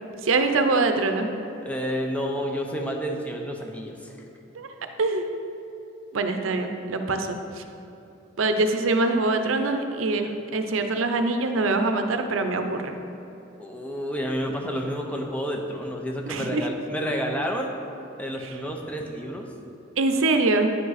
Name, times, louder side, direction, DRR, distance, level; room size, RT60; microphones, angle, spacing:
voice 1, 0.2-1.3 4.5-4.7 5.0-5.3 6.1-7.6 8.4-12.9 16.3-16.7 18.4-18.5 20.0-20.7, right 3 dB, 85° right, 7 dB, 0.6 m, -24 dB
voice 2, 1.7-4.1 13.6-17.7 18.2-19.5, equal, 5° left, 1 dB, 0.6 m, -30 dB
9.6 x 5.2 x 4.0 m, 2.9 s
head